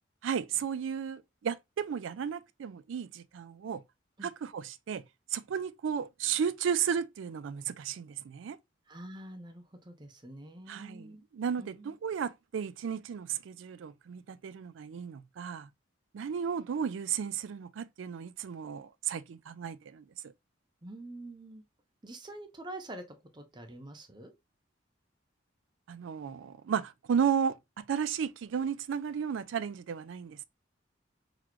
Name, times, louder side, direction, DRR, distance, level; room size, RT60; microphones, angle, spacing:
voice 1, 0.2-3.8 4.2-5.0 5.3-8.6 10.7-15.7 16.1-20.0 25.9-30.4, right 7 dB, 80° right, 0.4 m, -34 dB
voice 2, 8.9-11.2 11.6-11.9 20.8-21.6 22.0-24.3, right 1 dB, 25° right, 0.6 m, -46 dB
4.0 x 3.0 x 2.9 m
head